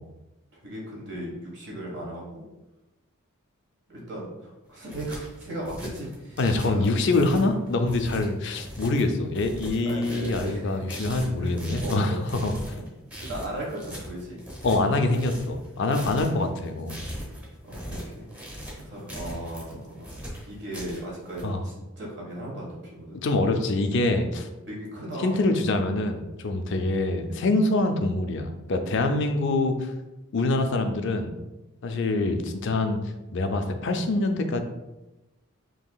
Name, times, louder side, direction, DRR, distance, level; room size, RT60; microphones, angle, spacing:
voice 1, 0.5-2.4 3.9-6.9 9.8-10.8 11.4-12.2 12.8-12.9 13.2-14.4 17.6-18.3 18.8-20.1 20.5-23.2 23.7-23.8 24.7-25.4 26.7-26.9, right 1 dB, 55° right, -3 dB, 1.4 m, -37 dB
sound 1, 4.6-21.4, equal, 5° right, 1.0 m, -40 dB
voice 2, 6.4-12.6 14.6-17.0 21.4-21.6 23.2-24.5 25.2-29.9 30.3-31.3 31.8-33.0 33.3-34.6, left 2 dB, 55° left, 6 dB, 0.4 m, -25 dB
5.4 x 2.9 x 2.3 m, 1.0 s
head